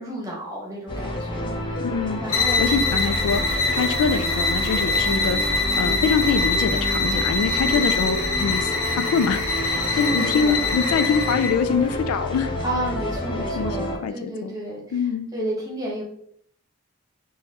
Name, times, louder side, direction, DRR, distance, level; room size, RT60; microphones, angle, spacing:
voice 1, 0.0-1.8 2.2-3.1 7.4-7.9 9.9-10.6 12.6-16.0, right 1 dB, 15° right, -3 dB, 1.0 m, -32 dB
sound 1, 0.9-14.0, left 1 dB, 20° left, 0.5 m, -29 dB
voice 2, 1.8-2.2 2.6-12.5 13.3-14.5 14.9-15.3, left 6 dB, 90° left, 10 dB, 0.3 m, -25 dB
sound 2, 2.3-11.6, left 3 dB, 65° left, 1.2 m, -24 dB
3.8 x 2.6 x 2.8 m, 0.66 s
head